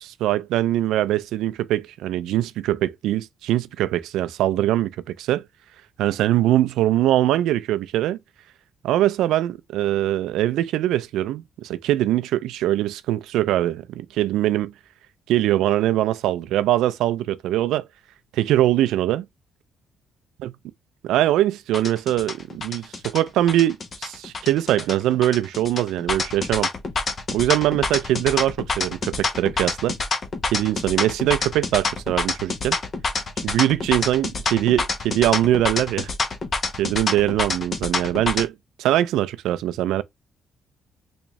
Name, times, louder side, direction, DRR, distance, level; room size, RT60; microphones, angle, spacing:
voice 1, 0.0-5.4 6.0-8.2 8.8-14.7 15.3-17.9 18.3-19.3 20.4-20.5 21.0-26.7 27.3-29.9 30.5-32.8 33.4-36.1 36.8-38.5 38.8-40.0, right 13 dB, 90° right, 0.3 m, -22 dB
sound 1, 21.7-38.4, left 3 dB, 45° left, 1.0 m, -27 dB
3.5 x 3.1 x 3.0 m
cardioid pair, 90°, 0 cm